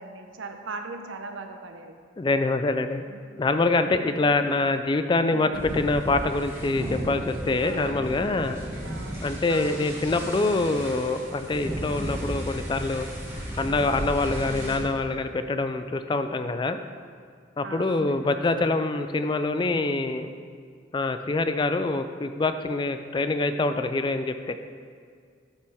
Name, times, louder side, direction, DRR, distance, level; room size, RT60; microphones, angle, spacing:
voice 1, 0.0-1.9 3.1-3.3 5.3-5.8 7.6-8.1 8.8-9.9 14.4-15.0 17.6-18.7, right 3 dB, 85° right, 6 dB, 0.7 m, -40 dB
voice 2, 2.2-3.0 3.4-8.6 9.2-13.1 13.6-16.8 17.6-20.3 20.9-24.6, left 3 dB, 25° left, 9 dB, 0.3 m, -25 dB
sound 1, 5.5-14.8, right 1 dB, 15° right, 1.4 m, -34 dB
12.0 x 5.4 x 3.5 m, 2.2 s
head